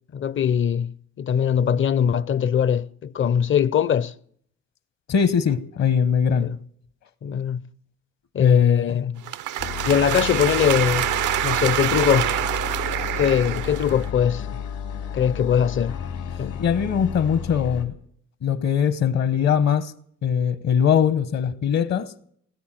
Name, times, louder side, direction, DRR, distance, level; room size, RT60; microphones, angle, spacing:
voice 1, 0.1-4.1 6.4-6.6 7.2-7.6 8.3-9.1 9.8-11.1 11.4-12.4 13.2-14.5 15.1-16.0 16.4-16.6, left 8 dB, 40° left, 0.6 m, -21 dB
voice 2, 5.1-6.5 8.4-9.0 16.6-17.9 18.4-19.9 20.2-22.1, left 7 dB, 60° left, 1.1 m, -21 dB
sound 1, 9.2-14.1, right 13 dB, 85° right, 0.7 m, -26 dB
sound 2, 9.6-17.8, left 7 dB, 80° left, 2.6 m, -32 dB
18.5 x 8.5 x 7.6 m
cardioid pair, 90°, 30 cm